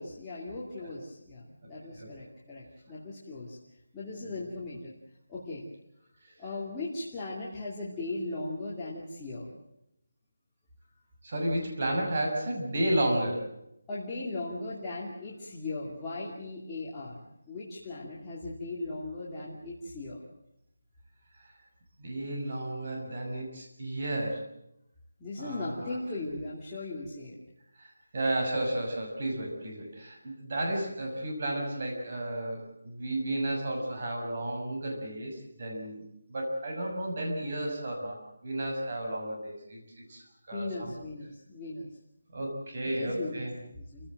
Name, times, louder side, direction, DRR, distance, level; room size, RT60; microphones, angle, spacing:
voice 1, 0.0-3.6 3.9-4.9 5.3-5.6 6.4-9.5 13.9-20.2 25.2-27.4 40.5-41.9 42.8-44.1, left 2 dB, 10° left, -9 dB, 2.5 m, -38 dB
voice 2, 11.2-13.4 22.0-24.4 25.4-26.0 27.8-36.0 36.3-38.2 38.4-39.8 40.1-40.2 40.5-40.9 42.3-43.5, right 1 dB, 35° right, 0 dB, 6.5 m, -32 dB
29.0 x 16.0 x 7.7 m, 0.82 s
figure-of-eight pair, 175°, 0 cm